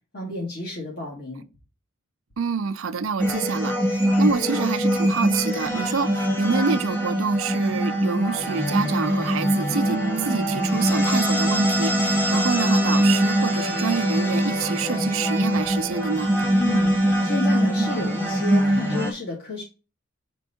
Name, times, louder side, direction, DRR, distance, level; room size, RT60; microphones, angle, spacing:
voice 1, 0.1-1.4 16.5-19.6, left 3 dB, 50° left, 1.9 m, -31 dB
voice 2, 2.4-16.3, right 5 dB, 85° right, 0.5 m, -27 dB
sound 1, 3.2-19.1, equal, 10° left, 1.3 m, -22 dB
5.3 x 4.6 x 4.3 m
head